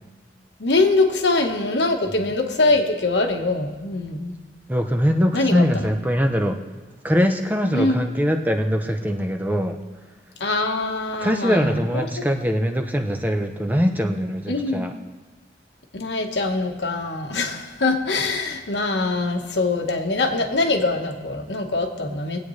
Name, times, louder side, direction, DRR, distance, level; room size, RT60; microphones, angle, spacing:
voice 1, 0.6-4.3 5.3-5.9 7.7-8.0 10.4-12.2 14.5-14.9 15.9-22.4, left 2 dB, 85° left, 3 dB, 1.3 m, -23 dB
voice 2, 4.7-6.6 7.0-9.8 11.2-14.9, equal, 10° right, 4 dB, 0.7 m, -22 dB
22.0 x 8.6 x 3.2 m, 1.2 s
head